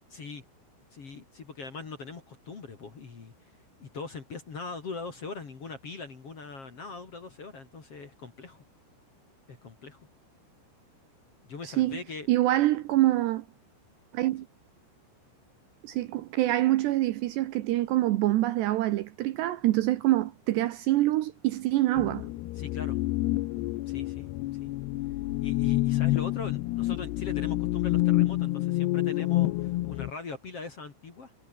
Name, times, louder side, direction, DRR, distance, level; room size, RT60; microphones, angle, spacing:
voice 1, 0.1-0.4 0.9-3.5 3.8-8.6 9.5-10.1 11.4-12.3 22.5-23.0 23.9-24.7 25.4-31.3, left 4 dB, 40° left, 2.8 m, -41 dB
voice 2, 11.6-12.0 12.3-13.5 14.1-14.5 15.8-22.3, right 16 dB, 80° right, 2.7 m, -25 dB
sound 1, 22.0-30.1, left 17 dB, 75° left, 2.5 m, -28 dB
omnidirectional pair, 5.7 m